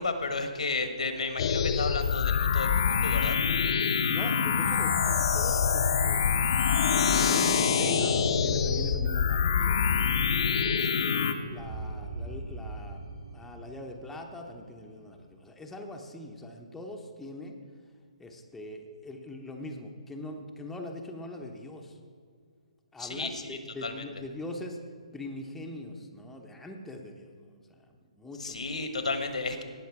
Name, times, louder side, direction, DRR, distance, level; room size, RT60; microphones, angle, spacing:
voice 1, 0.0-3.4 23.0-24.0 28.4-29.6, left 3 dB, 75° left, 7 dB, 1.3 m, -33 dB
sound 1, 1.4-11.3, left 6 dB, 50° left, 0.8 m, -25 dB
sound 2, 2.4-15.8, right 2 dB, 45° right, 3.0 m, -45 dB
voice 2, 4.1-6.3 6.9-10.0 10.6-13.0 13.3-17.6 18.2-22.0 22.9-24.8 25.1-28.7, left 1 dB, 5° left, 1 dB, 0.9 m, -42 dB
18.0 x 6.4 x 4.7 m, 2.1 s
figure-of-eight pair, 140°, 4 cm